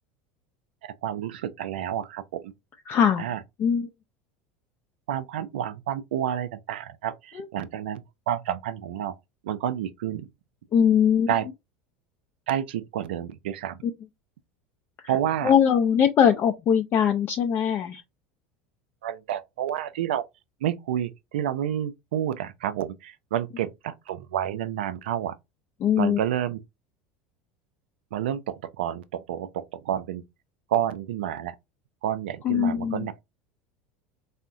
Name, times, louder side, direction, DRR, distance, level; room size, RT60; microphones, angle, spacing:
voice 1, 0.8-2.5 3.2-3.4 5.1-9.1 9.4-10.3 11.3-11.5 12.5-13.8 15.1-15.5 19.0-20.2 20.6-25.4 26.0-26.6 28.1-30.2 30.7-31.5 32.0-33.1, right 10 dB, 90° right, 0.4 m, -29 dB
voice 2, 2.9-3.3 3.6-3.9 7.4-7.5 10.7-11.3 13.8-13.9 15.4-18.0 25.8-26.2 32.4-33.1, left 8 dB, 40° left, 0.4 m, -21 dB
3.5 x 2.1 x 2.5 m
supercardioid pair, 105°, 5 cm